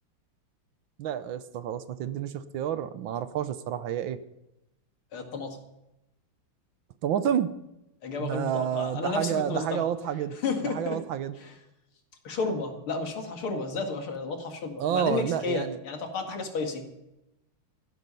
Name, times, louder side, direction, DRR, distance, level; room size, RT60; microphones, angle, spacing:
voice 1, 1.0-4.2 7.0-7.5 8.2-10.3 10.6-11.4 14.8-15.8, right 9 dB, 70° right, 13 dB, 1.5 m, -29 dB
voice 2, 5.1-5.6 8.0-9.8 10.4-11.0 11.4-11.5 12.2-16.8, left 4 dB, 85° left, 4 dB, 2.9 m, -32 dB
14.5 x 12.0 x 5.6 m, 0.90 s
omnidirectional pair, 2.3 m